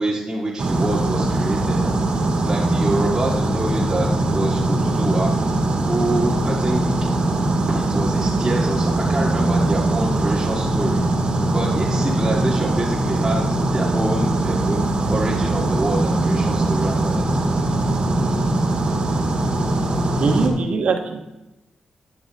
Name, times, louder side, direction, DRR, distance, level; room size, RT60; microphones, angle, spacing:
voice 1, 0.0-1.9 2.4-5.4 5.9-6.9 7.7-14.8 15.1-17.5, right 2 dB, 20° right, -6 dB, 1.9 m, -26 dB
sound 1, 0.6-20.5, right 2 dB, 50° right, 2.1 m, -21 dB
voice 2, 20.2-21.2, right 4 dB, 70° right, 4 dB, 1.4 m, -21 dB
11.0 x 9.7 x 3.6 m, 0.97 s
cardioid pair, 85°, 2 cm